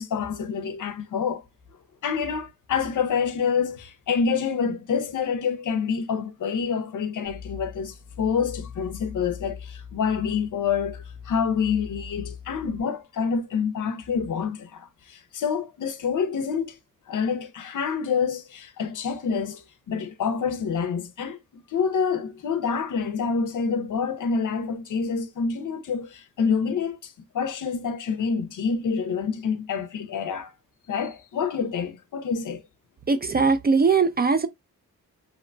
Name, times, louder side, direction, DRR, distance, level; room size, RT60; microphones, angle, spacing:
voice 1, 0.0-1.4 2.0-16.8 17.1-30.5 30.9-32.6, left 6 dB, 55° left, 0.6 m, -27 dB
sound 1, 7.2-12.8, left 6 dB, 85° right, 1.3 m, -41 dB
voice 2, 33.1-34.5, right 4 dB, 25° right, 0.4 m, -20 dB
2.9 x 2.1 x 2.5 m
supercardioid pair, 50°, 36 cm